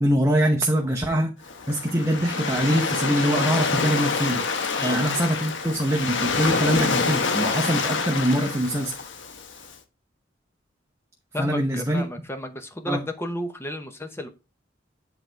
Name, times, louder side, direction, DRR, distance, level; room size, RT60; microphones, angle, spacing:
voice 1, 0.0-1.3 1.7-4.4 4.8-8.9 11.4-12.0 12.9-13.0, equal, 15° right, 0.9 m, -23 dB
Waves surf, 1.4-9.7, left 4 dB, 90° left, 1.2 m, -26 dB
voice 2, 11.3-14.3, left 1 dB, 15° left, 0.8 m, -33 dB
8.4 x 4.0 x 4.5 m
head